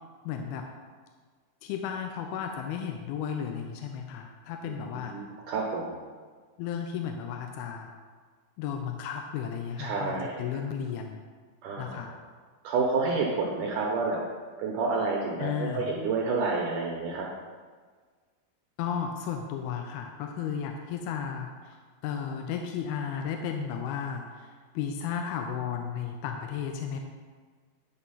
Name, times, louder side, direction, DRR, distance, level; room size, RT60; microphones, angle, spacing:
voice 1, 0.2-0.7 1.6-5.2 6.6-7.9 8.6-11.2 11.8-12.1 15.4-15.9 18.8-21.8 22.0-27.0, left 7 dB, 80° left, 4 dB, 2.5 m, -34 dB
voice 2, 4.6-6.0 9.8-10.6 11.6-12.2 12.6-14.2 14.6-17.3, right 4 dB, 75° right, -2 dB, 2.0 m, -29 dB
10.5 x 4.3 x 5.6 m, 1.6 s
omnidirectional pair, 4.5 m